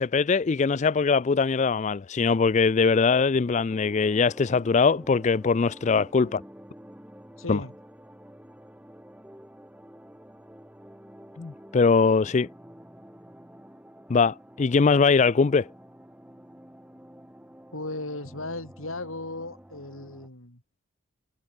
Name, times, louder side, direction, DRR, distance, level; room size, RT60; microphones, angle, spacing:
voice 1, 0.0-6.4 7.5-7.6 11.4-12.5 14.1-15.7, left 4 dB, 35° left, 0.4 m, -22 dB
sound 1, 3.7-20.3, equal, 5° right, 2.7 m, -49 dB
voice 2, 7.4-7.7 17.7-20.6, left 2 dB, 70° left, 6.1 m, -36 dB
head